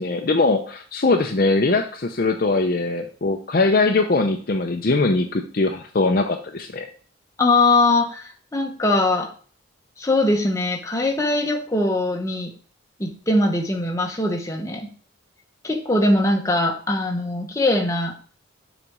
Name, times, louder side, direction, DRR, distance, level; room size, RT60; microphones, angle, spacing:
voice 1, 0.0-6.9, left 3 dB, 45° left, 5 dB, 0.5 m, -21 dB
voice 2, 7.4-9.3 10.0-12.5 13.0-14.9 15.6-18.1, left 2 dB, 15° left, 2 dB, 0.9 m, -21 dB
7.0 x 4.0 x 4.7 m, 0.42 s
head